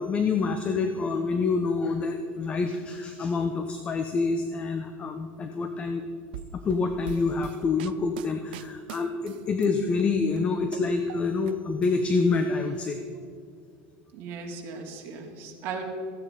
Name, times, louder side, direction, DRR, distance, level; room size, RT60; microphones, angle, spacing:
voice 1, 0.0-6.0 6.5-13.0, left 4 dB, 25° left, 7 dB, 0.8 m, -27 dB
sound 1, 6.3-9.7 10.0-11.5 11.8-12.7, right 10 dB, 85° right, 0.5 m, -43 dB
voice 2, 14.1-15.8, right 5 dB, 45° right, 1 dB, 2.4 m, -37 dB
15.0 x 9.8 x 5.0 m, 2.5 s
supercardioid pair, 145°, 5 cm